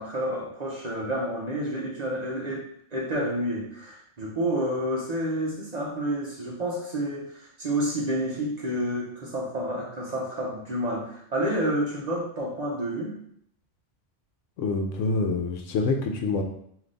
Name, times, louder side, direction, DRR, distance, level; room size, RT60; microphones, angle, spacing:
voice 1, 0.0-2.6 2.9-13.2, right 1 dB, 40° right, -3 dB, 0.7 m, -29 dB
voice 2, 14.6-16.4, left 3 dB, 80° left, 4 dB, 0.9 m, -26 dB
3.4 x 2.6 x 3.9 m, 0.68 s
omnidirectional pair, 1.3 m